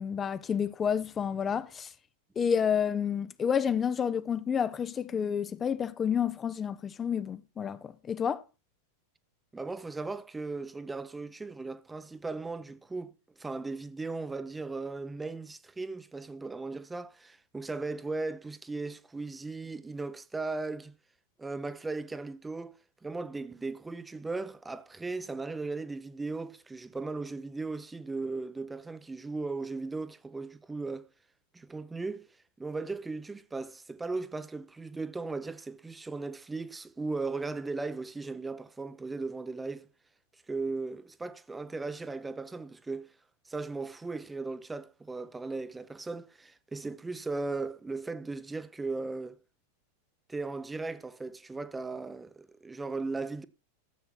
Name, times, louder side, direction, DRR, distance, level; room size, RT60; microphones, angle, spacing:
voice 1, 0.0-1.9 2.4-8.4, left 7 dB, 20° left, 0.7 m, -30 dB
voice 2, 9.5-20.9 21.4-22.7 23.0-31.1 31.5-32.3 32.6-39.9 40.5-43.1 43.5-49.4 50.3-53.4, right 3 dB, 10° right, 0.8 m, -37 dB
13.5 x 8.3 x 4.4 m
figure-of-eight pair, 90°, 0 cm